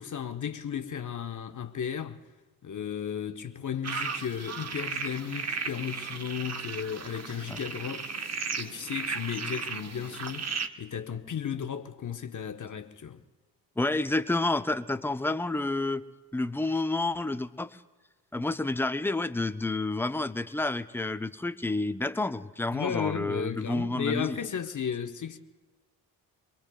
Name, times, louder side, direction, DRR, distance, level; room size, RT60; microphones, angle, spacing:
voice 1, 0.0-2.2 2.6-13.2 22.7-25.4, left 8 dB, 40° left, 0.9 m, -34 dB
sound 1, 3.8-10.7, right 5 dB, 35° right, 1.0 m, -35 dB
voice 2, 13.8-16.0 16.3-17.8 18.3-24.3, left 2 dB, 5° left, 0.5 m, -29 dB
28.0 x 22.0 x 2.3 m
supercardioid pair, 50°, 46 cm